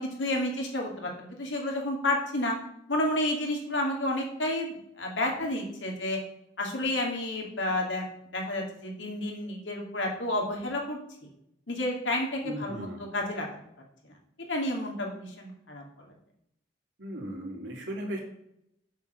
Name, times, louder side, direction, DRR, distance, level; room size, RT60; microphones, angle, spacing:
voice 1, 0.0-2.6 2.9-6.2 6.6-8.1 8.3-11.0 11.7-12.9 13.1-13.5 14.5-16.1, left 1 dB, 90° left, 1 dB, 2.5 m, -30 dB
voice 2, 12.4-13.0 17.0-18.2, equal, 70° right, -1 dB, 2.9 m, -36 dB
7.0 x 6.4 x 6.5 m, 0.76 s
head